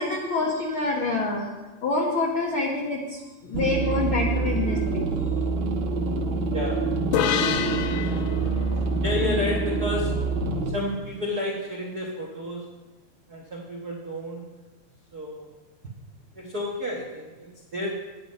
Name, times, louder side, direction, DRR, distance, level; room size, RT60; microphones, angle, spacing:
voice 1, 0.0-1.4 1.8-5.0 7.2-7.4 9.2-9.4, left 3 dB, 55° left, -3 dB, 1.6 m, -27 dB
voice 2, 0.7-1.2 4.4-4.7 6.5-6.8 8.4-8.5 8.7-10.1 10.7-12.6 13.3-14.4 15.1-15.5 16.3-17.9, left 1 dB, 85° right, -2 dB, 0.8 m, -32 dB
sound 1, 3.5-10.7, right 3 dB, 65° right, 2.3 m, -26 dB
sound 2, 7.1-10.6, left 9 dB, 80° left, 1.9 m, -29 dB
10.0 x 9.6 x 5.3 m, 1.2 s
omnidirectional pair, 4.0 m